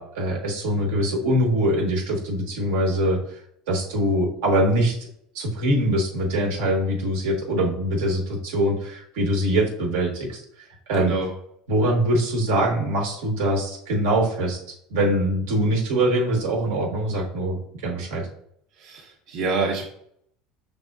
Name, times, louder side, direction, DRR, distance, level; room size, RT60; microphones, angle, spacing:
voice 1, 0.0-3.2 3.7-5.0 5.3-10.4 10.9-11.1 11.7-14.6 14.9-18.3, right 1 dB, 85° right, 0 dB, 1.0 m, -23 dB
voice 2, 11.0-11.3 18.8-19.8, right 3 dB, 60° right, -1 dB, 0.7 m, -27 dB
5.4 x 3.4 x 2.3 m, 0.70 s
supercardioid pair, 120°, 0 cm